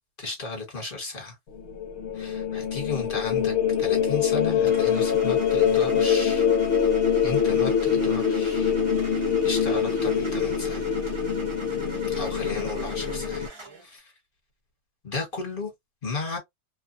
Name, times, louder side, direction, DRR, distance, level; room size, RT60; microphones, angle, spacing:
voice 1, 0.2-1.4 2.1-6.5 7.2-8.7 9.1-10.9 12.1-13.5 13.8-14.1 15.0-15.7 16.0-16.4, left 3 dB, 35° left, 1.4 m, -34 dB
sound 1, 1.5-13.5, left 7 dB, 55° left, 0.9 m, -24 dB
Car / Engine starting, 4.7-13.9, right 2 dB, 40° right, 0.4 m, -43 dB
3.0 x 2.2 x 2.5 m
omnidirectional pair, 1.6 m